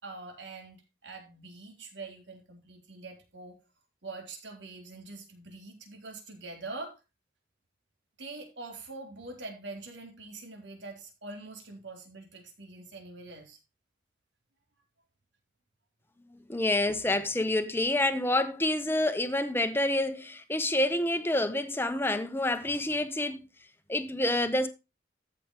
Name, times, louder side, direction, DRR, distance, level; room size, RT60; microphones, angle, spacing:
voice 1, 0.0-3.6 4.0-7.0 8.2-13.6, right 3 dB, 75° right, 4.0 m, -44 dB
voice 2, 16.3-23.4 23.9-24.7, left 1 dB, 10° left, 1.1 m, -28 dB
14.0 x 6.6 x 3.2 m
head